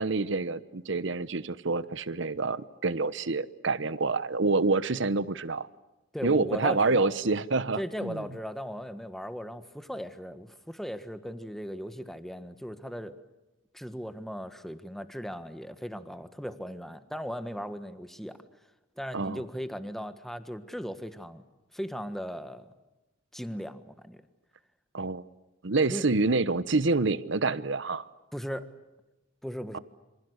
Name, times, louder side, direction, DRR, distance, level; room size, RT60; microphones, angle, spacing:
voice 1, 0.0-5.7 6.2-8.2 19.1-19.4 24.9-25.2 25.6-28.1 29.7-29.8, right 3 dB, 70° right, 15 dB, 1.1 m, -27 dB
voice 2, 6.1-7.1 7.8-13.1 13.7-18.4 19.0-21.4 21.7-22.7 23.3-24.2 25.9-26.1 28.3-28.7 29.4-29.8, equal, ahead, 10 dB, 1.5 m, -37 dB
27.5 x 25.5 x 8.1 m, 1.0 s
head